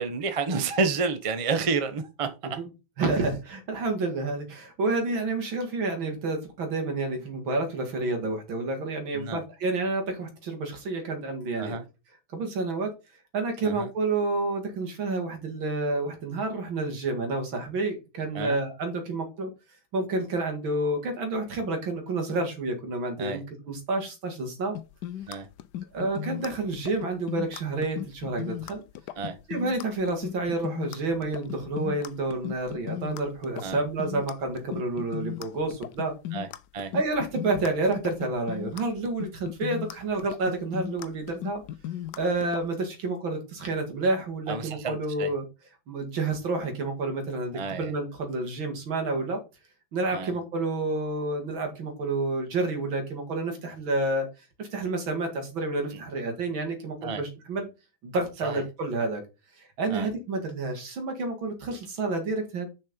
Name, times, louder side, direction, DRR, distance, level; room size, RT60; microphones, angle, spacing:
voice 1, 0.0-2.6 9.1-9.4 11.6-11.8 13.6-13.9 18.3-18.6 23.2-23.4 25.3-25.5 29.2-29.3 33.6-33.8 36.3-36.5 36.7-36.9 44.5-45.3 47.5-47.9 50.1-50.3 57.0-57.2 58.4-58.6 59.9-60.1, right 4 dB, 30° right, 0.6 m, -30 dB
voice 2, 3.0-11.8 12.3-12.9 13.3-19.5 19.9-24.8 25.9-28.8 29.5-36.1 36.9-41.6 42.2-45.4 45.9-49.4 49.9-54.3 54.6-57.7 58.0-59.2 59.6-62.7, right 2 dB, 80° right, 2.7 m, -29 dB
sound 1, 24.7-42.6, left 12 dB, 70° left, 1.0 m, -36 dB
6.6 x 5.5 x 5.1 m
omnidirectional pair, 2.1 m